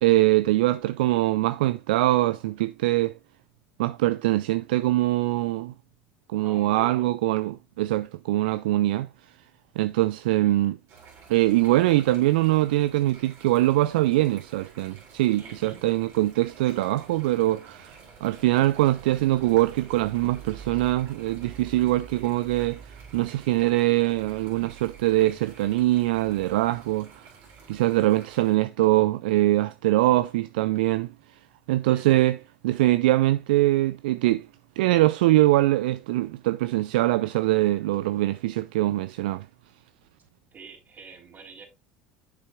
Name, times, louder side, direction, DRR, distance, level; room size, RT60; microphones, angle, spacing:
voice 1, 0.0-3.1 3.8-5.7 6.3-9.1 9.8-10.8 11.3-27.3 27.7-31.1 31.7-32.4 32.6-34.5 34.8-39.5, right 17 dB, 75° right, 0.3 m, -23 dB
voice 2, 6.3-7.1 15.4-15.8 31.9-32.3 40.5-41.7, right 5 dB, 40° right, 3.6 m, -46 dB
sound 1, 10.9-28.6, right 6 dB, 55° right, 3.2 m, -48 dB
8.1 x 6.8 x 2.4 m
hypercardioid pair, 70°, 5 cm